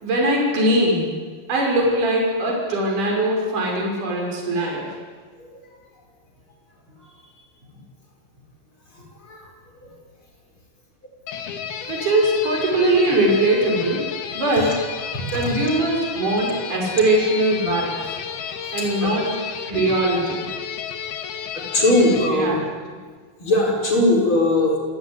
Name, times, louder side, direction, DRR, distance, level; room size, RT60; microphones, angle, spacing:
voice 1, 0.0-1.1 1.5-4.9 11.9-14.1 14.3-14.8 15.3-18.2 18.7-19.4 19.6-20.5 22.3-22.6, right 1 dB, 50° right, -1 dB, 7.2 m, -21 dB
sound 1, 11.3-22.3, left 7 dB, 75° left, 3.8 m, -32 dB
voice 2, 14.4-14.7 15.3-15.5 18.3-18.4 18.8-19.1 20.1-20.2 21.7-22.6 23.4-24.8, left 1 dB, 30° left, 0 dB, 6.5 m, -20 dB
28.0 x 19.0 x 9.7 m, 1.5 s
omnidirectional pair, 4.5 m